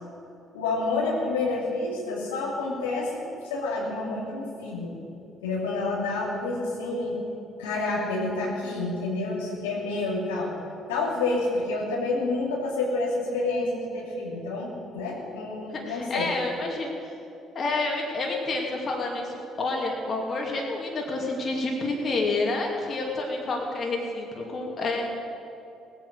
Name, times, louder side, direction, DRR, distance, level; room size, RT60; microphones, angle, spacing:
voice 1, 0.5-4.9 5.4-7.2 7.6-10.5 10.9-16.3, left 3 dB, 85° left, -5 dB, 2.6 m, -29 dB
voice 2, 15.7-16.9 17.5-25.1, left 2 dB, 50° left, 0 dB, 2.7 m, -29 dB
18.5 x 8.9 x 6.5 m, 2.8 s
hypercardioid pair, 50°, 0 cm